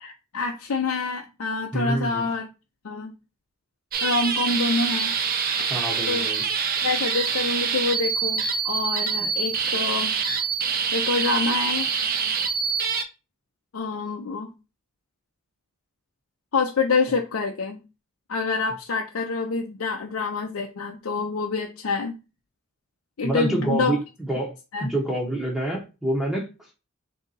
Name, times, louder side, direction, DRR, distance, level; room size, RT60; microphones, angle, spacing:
voice 1, 0.0-2.5 2.8-3.1 4.0-5.1 6.1-6.3 6.8-10.1 10.9-11.9 13.7-14.5 16.5-17.8 18.3-22.1 23.2-24.0 24.7-24.9, left 4 dB, 70° left, 0.6 m, -26 dB
voice 2, 1.7-2.3 5.7-6.4 23.2-24.0 24.3-24.6 24.8-26.5, right 1 dB, ahead, 0.8 m, -26 dB
sound 1, 3.9-13.0, right 6 dB, 45° right, 0.6 m, -25 dB
3.9 x 2.8 x 3.9 m
head